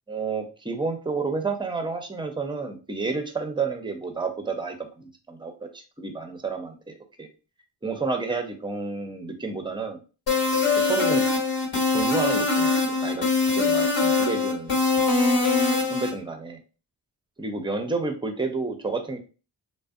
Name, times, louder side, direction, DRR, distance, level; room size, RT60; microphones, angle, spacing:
voice 1, 0.1-7.3 7.8-10.0 10.7-11.2 11.7-13.3 13.5-14.8 15.5-16.6 17.4-19.2, right 4 dB, 10° right, 6 dB, 0.5 m, -30 dB
sound 1, 10.3-16.1, left 4 dB, 65° left, 1.3 m, -22 dB
2.5 x 2.1 x 2.4 m, 0.34 s
supercardioid pair, 40°, 46 cm